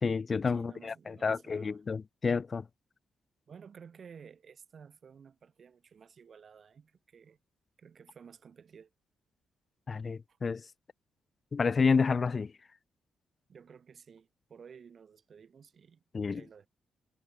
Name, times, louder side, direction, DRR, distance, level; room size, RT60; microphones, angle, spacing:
voice 1, 0.0-2.6 9.9-10.6 11.5-12.5 16.1-16.4, left 5 dB, 40° left, 0.4 m, -29 dB
voice 2, 0.5-1.8 3.5-7.4 7.8-8.9 10.3-10.4 13.5-16.7, right 6 dB, 55° right, 1.9 m, -54 dB
cardioid pair, 65°, 0 cm